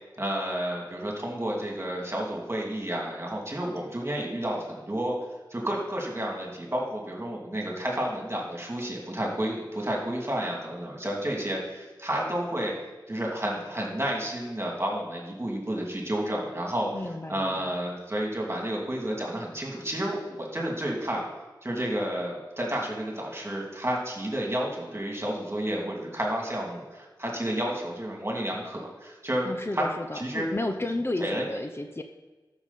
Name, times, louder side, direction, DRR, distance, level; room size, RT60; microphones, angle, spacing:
voice 1, 0.2-5.2 5.5-12.7 13.1-16.9 17.3-21.2 21.6-29.5 29.7-29.9 30.1-30.5 31.2-31.4, right 1 dB, 30° right, -1 dB, 2.6 m, -31 dB
voice 2, 16.9-17.7 29.5-32.0, left 2 dB, 30° left, 6 dB, 0.6 m, -32 dB
13.0 x 6.4 x 4.1 m, 1.2 s
wide cardioid pair, 55°, 8 cm